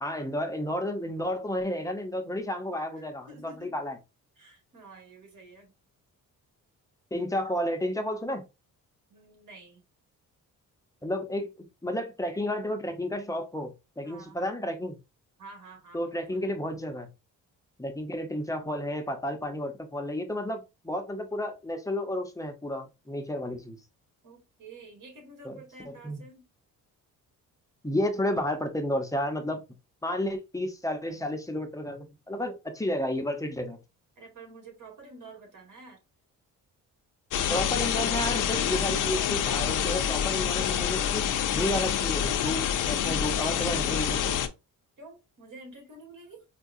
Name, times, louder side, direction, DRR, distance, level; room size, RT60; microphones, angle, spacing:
voice 1, 0.0-4.0 7.1-8.4 11.0-15.0 15.9-17.1 17.8-23.8 25.4-26.2 27.8-29.6 30.0-33.8 37.5-41.2 41.5-44.4, left 1 dB, 10° left, 0.7 m, -32 dB
voice 2, 3.0-3.8 4.4-5.7 9.1-9.8 14.0-14.4 15.4-16.5 24.2-26.5 34.2-36.0 43.1-43.4 45.0-46.4, right 2 dB, 60° right, 2.0 m, -49 dB
sound 1, 37.3-44.5, left 9 dB, 60° left, 0.6 m, -27 dB
4.6 x 2.2 x 2.6 m
cardioid pair, 110°, 34 cm